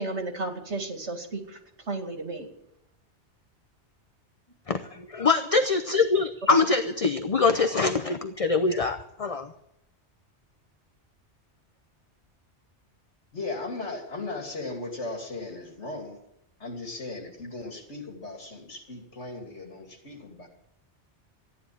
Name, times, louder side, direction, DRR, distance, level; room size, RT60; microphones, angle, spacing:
voice 1, 0.0-1.6 1.9-2.5 6.5-6.6, right 2 dB, 80° right, 4 dB, 2.6 m, -32 dB
voice 2, 4.7-9.5, left 4 dB, 35° left, 8 dB, 0.8 m, -24 dB
voice 3, 13.3-16.2 16.6-20.5, left 2 dB, 80° left, 2 dB, 3.1 m, -37 dB
14.0 x 10.5 x 8.7 m, 0.82 s
omnidirectional pair, 1.2 m